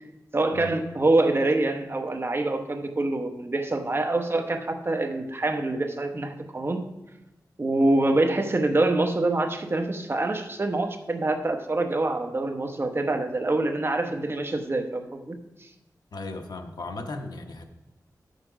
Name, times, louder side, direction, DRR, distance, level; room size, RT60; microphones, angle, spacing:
voice 1, 0.3-6.9 7.6-15.3 15.6-15.7, right 2 dB, 35° right, 5 dB, 0.9 m, -25 dB
voice 2, 16.1-17.6, left 2 dB, 75° left, 5 dB, 1.0 m, -36 dB
10.0 x 6.5 x 4.9 m, 1.0 s
wide cardioid pair, 105°, 7 cm